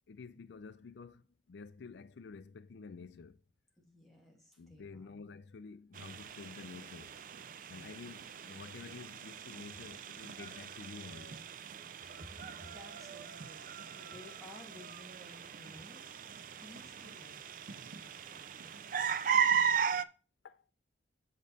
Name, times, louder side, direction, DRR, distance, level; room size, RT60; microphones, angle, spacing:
voice 1, 0.1-3.4 4.6-7.2 7.7-11.4 20.4-20.6, left 4 dB, 70° left, 0.4 m, -50 dB
voice 2, 3.8-5.2 7.7-8.1 12.2-16.0 16.6-19.4, left 1 dB, ahead, 1.9 m, -56 dB
sound 1, 5.9-20.0, right 7 dB, 45° right, 0.4 m, -37 dB
7.7 x 5.2 x 4.0 m
head